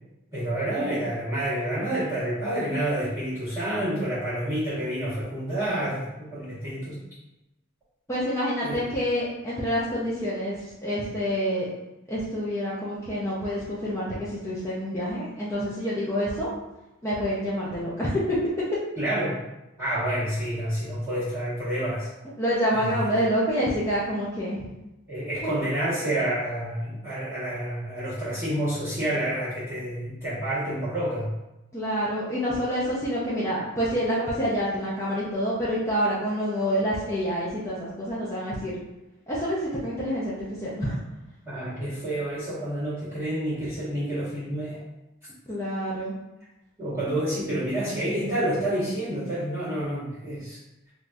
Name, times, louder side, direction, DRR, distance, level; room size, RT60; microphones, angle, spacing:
voice 1, 0.3-7.0 8.6-8.8 19.0-19.4 19.8-22.1 22.7-23.0 25.1-31.3 41.5-44.8 46.8-50.6, right 1 dB, 10° right, -15 dB, 0.9 m, -29 dB
voice 2, 8.1-11.7 12.1-16.5 17.0-18.4 22.4-24.7 25.4-25.6 31.7-38.7 39.3-41.0 45.5-46.1, equal, 15° left, -8 dB, 0.4 m, -27 dB
3.2 x 2.2 x 2.5 m, 0.97 s
head